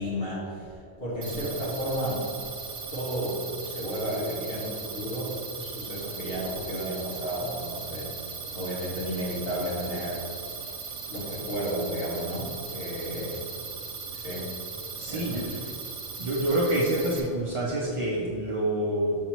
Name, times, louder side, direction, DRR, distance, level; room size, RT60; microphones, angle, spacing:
voice 1, 0.0-2.3 2.9-8.2 8.5-10.3 11.1-13.5 14.1-14.5 15.0-15.7, equal, 55° left, -7 dB, 1.9 m, -33 dB
sound 1, 1.2-17.2, right 5 dB, 75° right, 1.1 m, -38 dB
voice 2, 15.0-15.5 16.2-19.2, right 1 dB, 35° right, -6 dB, 0.6 m, -27 dB
5.8 x 5.4 x 3.0 m, 2.7 s
omnidirectional pair, 1.2 m